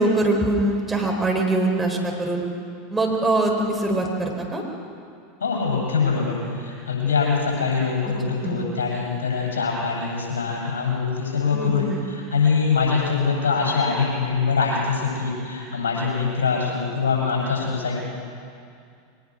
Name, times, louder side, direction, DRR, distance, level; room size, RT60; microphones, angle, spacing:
voice 1, 0.0-2.4 2.9-4.6 8.4-8.6 11.5-12.0, right 2 dB, 10° right, 0 dB, 4.6 m, -23 dB
voice 2, 5.4-18.0, left 5 dB, 70° left, -2 dB, 7.9 m, -23 dB
22.5 x 20.0 x 6.4 m, 2.3 s
figure-of-eight pair, 85°, 0 cm